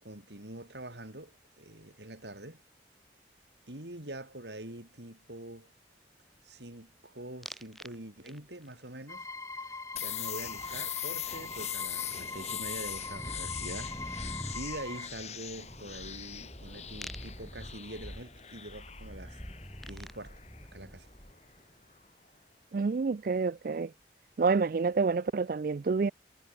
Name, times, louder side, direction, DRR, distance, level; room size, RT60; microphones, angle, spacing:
voice 1, 0.0-2.6 3.7-5.7 6.4-9.3 9.6-19.4 19.9-20.4 20.7-21.1, right 1 dB, 75° right, 4.7 m, -45 dB
sound 1, 7.4-7.9 8.3-8.7 11.2-11.3 11.5-21.6, equal, ahead, 4.1 m, -45 dB
sound 2, 9.1-15.1, left 3 dB, 15° left, 1.3 m, -42 dB
sound 3, 10.0-21.6, left 10 dB, 35° left, 5.3 m, -41 dB
voice 2, 22.7-23.9 24.4-26.1, right 4 dB, 50° right, 0.4 m, -28 dB
head